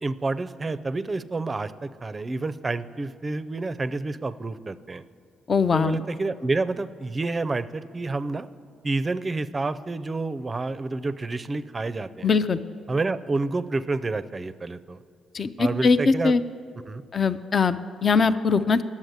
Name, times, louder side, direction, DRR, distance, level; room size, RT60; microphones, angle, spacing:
voice 1, 0.0-5.0 5.7-8.5 8.8-12.3 12.9-15.0 15.6-16.3 16.8-17.0, right 3 dB, 25° right, 14 dB, 0.4 m, -29 dB
voice 2, 5.5-6.0 12.2-12.6 15.3-16.4 17.1-18.8, left 5 dB, 40° left, 13 dB, 0.4 m, -21 dB
10.5 x 7.3 x 7.9 m, 2.6 s
cardioid pair, 90°, 0 cm